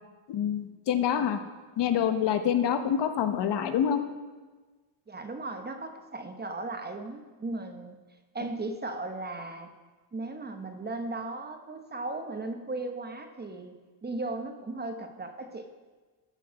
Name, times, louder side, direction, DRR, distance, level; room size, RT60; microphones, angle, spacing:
voice 1, 0.3-1.4 1.8-4.0, left 9 dB, 60° left, 9 dB, 0.9 m, -26 dB
voice 2, 5.1-8.0 8.3-9.7 10.1-15.7, right 2 dB, 20° right, 6 dB, 0.8 m, -37 dB
13.0 x 4.7 x 6.2 m, 1.3 s
cardioid pair, 115°, 47 cm